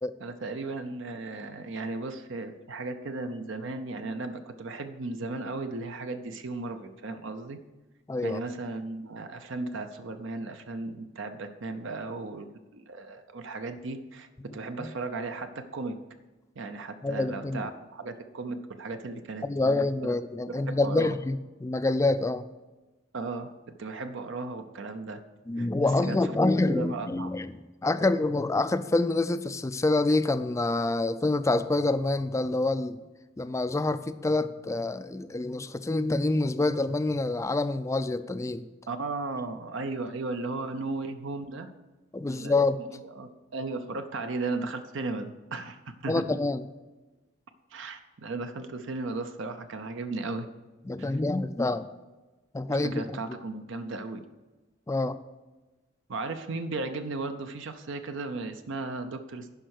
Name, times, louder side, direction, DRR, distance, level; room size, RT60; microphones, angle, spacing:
voice 1, 0.2-7.6 8.2-12.5 12.7-16.0 16.6-20.2 20.5-21.1 23.1-25.2 25.6-26.3 26.7-27.3 38.9-41.7 42.3-42.6 42.9-46.4 47.7-50.5 51.0-51.2 52.7-54.2 56.1-59.5, right 3 dB, 65° right, 0.7 m, -36 dB
voice 2, 8.1-8.4 14.5-14.9 17.0-17.7 19.4-22.4 25.5-33.0 33.4-38.6 42.1-42.8 46.1-46.6 50.9-51.9 52.5-53.0 54.9-55.2, left 2 dB, 15° left, 0.3 m, -27 dB
10.5 x 5.5 x 6.5 m
head